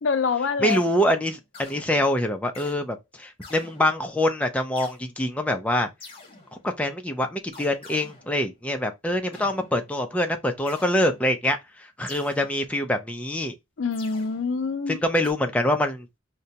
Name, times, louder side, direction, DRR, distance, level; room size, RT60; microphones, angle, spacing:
voice 1, 0.0-0.8 13.8-15.0, left 5 dB, 70° left, 0.5 m, -25 dB
sound 1, 0.6-2.8 3.4-4.2 4.8-5.0 6.0-6.8 7.5-8.7 9.3-10.1 10.7-11.5 12.1-13.0 13.9-14.8 15.2-15.3, left 3 dB, 30° left, 1.0 m, -47 dB
voice 2, 0.6-5.9 6.6-13.5 14.9-16.2, left 1 dB, 5° left, 0.5 m, -25 dB
4.9 x 2.2 x 2.7 m
head